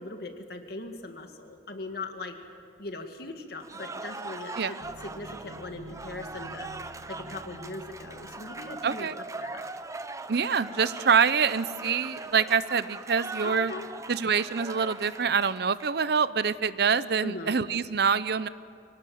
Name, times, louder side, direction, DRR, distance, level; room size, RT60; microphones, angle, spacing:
voice 1, 0.0-2.4 2.8-9.1 9.4-9.6 13.4-13.9 17.2-17.5, left 2 dB, 60° left, 5 dB, 2.0 m, -40 dB
Cheering / Applause, 3.6-16.2, right 3 dB, 20° right, 0.7 m, -40 dB
sound 1, 4.8-9.3, right 2 dB, 50° right, 1.3 m, -49 dB
voice 2, 8.8-9.1 10.3-13.7 14.1-18.5, right 6 dB, 65° right, 15 dB, 0.7 m, -25 dB
24.0 x 18.5 x 7.7 m, 2.4 s
head